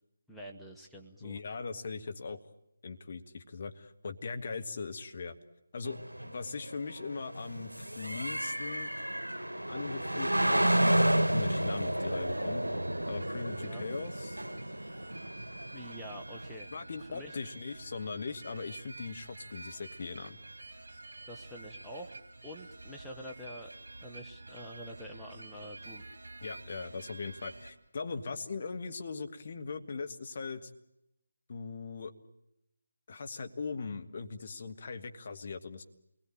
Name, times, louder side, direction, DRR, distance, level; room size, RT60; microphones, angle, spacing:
voice 1, 0.3-1.4 13.6-13.8 15.7-16.7 17.1-17.4 21.2-22.2 22.4-23.7 24.0-26.0, equal, ahead, -3 dB, 1.4 m, -46 dB
voice 2, 1.2-2.4 2.8-5.4 5.7-6.0 6.2-8.9 9.7-12.6 13.1-14.4 16.7-20.4 26.4-30.7 31.5-32.1 33.1-35.8, left 4 dB, 40° left, 6 dB, 1.9 m, -40 dB
sound 1, 5.9-16.5, right 1 dB, 80° right, 1.2 m, -31 dB
sound 2, 11.1-27.7, right 2 dB, 55° right, 3.2 m, -49 dB
28.0 x 21.0 x 8.8 m, 0.83 s
figure-of-eight pair, 155°, 0 cm